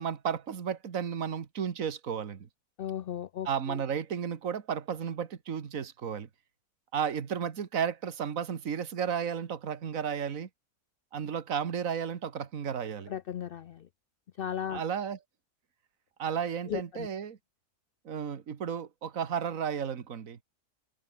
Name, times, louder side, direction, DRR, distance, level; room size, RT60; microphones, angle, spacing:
voice 1, 0.0-2.5 3.5-6.3 6.9-10.5 11.1-13.1 14.7-15.2 16.2-17.4 18.1-20.4, right 7 dB, 60° right, 1.9 m, -33 dB
voice 2, 2.8-3.8 13.1-13.9 14.4-14.8 16.7-17.1, left 10 dB, 80° left, 0.5 m, -36 dB
omnidirectional pair, 1.6 m